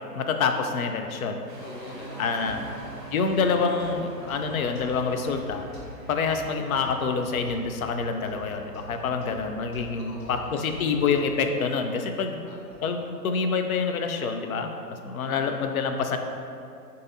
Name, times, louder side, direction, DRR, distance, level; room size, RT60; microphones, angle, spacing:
voice 1, 0.1-1.4 2.2-2.7 3.1-5.7 6.1-12.4 12.8-16.2, left 5 dB, 60° left, 5 dB, 0.5 m, -27 dB
sound 1, 1.5-13.3, right 2 dB, 30° right, 0.8 m, -47 dB
voice 2, 1.6-3.4 10.1-11.0 12.4-12.8 15.2-15.6, left 1 dB, 85° left, -2 dB, 0.9 m, -45 dB
sound 2, 2.2-11.4 11.9-12.0 12.7-12.8, equal, 40° left, 1.4 m, -45 dB
6.3 x 2.7 x 2.6 m, 2.5 s
figure-of-eight pair, 140°, 49 cm